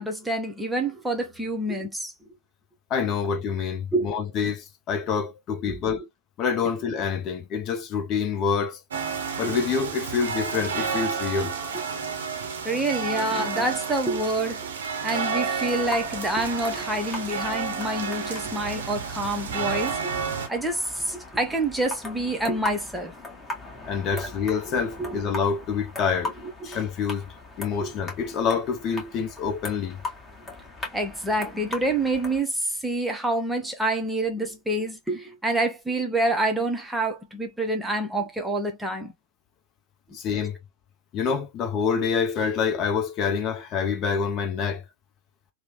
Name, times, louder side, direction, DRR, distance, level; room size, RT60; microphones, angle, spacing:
voice 1, 0.0-2.1 3.9-4.1 5.7-5.9 9.4-9.6 12.6-14.7 15.0-20.2 20.5-23.1 24.1-24.3 24.7-25.2 26.7-26.8 27.8-27.9 30.9-39.1, right 2 dB, 5° right, 0.7 m, -27 dB
voice 2, 2.9-6.1 6.4-8.8 9.4-11.6 23.9-26.3 26.6-27.3 27.6-30.0 40.1-40.6 41.1-44.8, left 6 dB, 35° left, 0.6 m, -27 dB
sound 1, 8.9-20.5, right 6 dB, 65° right, 0.6 m, -31 dB
sound 2, 15.8-32.4, left 2 dB, 15° left, 1.3 m, -39 dB
3.0 x 2.1 x 2.8 m
figure-of-eight pair, 90°, 0 cm